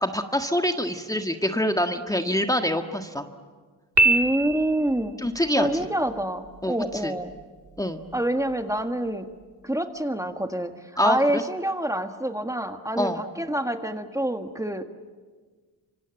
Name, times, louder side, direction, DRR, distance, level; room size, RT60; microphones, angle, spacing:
voice 1, 0.0-3.3 5.2-5.9 6.6-6.8 7.0-7.1 7.8-8.0 11.0-11.4 13.0-13.2, equal, 10° left, 6 dB, 1.6 m, -25 dB
voice 2, 4.0-5.1 5.5-7.3 8.1-9.2 9.6-10.7 11.0-14.8, right 1 dB, 10° right, 7 dB, 1.7 m, -27 dB
Piano, 4.0-5.1, right 2 dB, 45° right, 2.2 m, -22 dB
26.0 x 25.0 x 9.1 m, 1.4 s
cardioid pair, 80°, 40 cm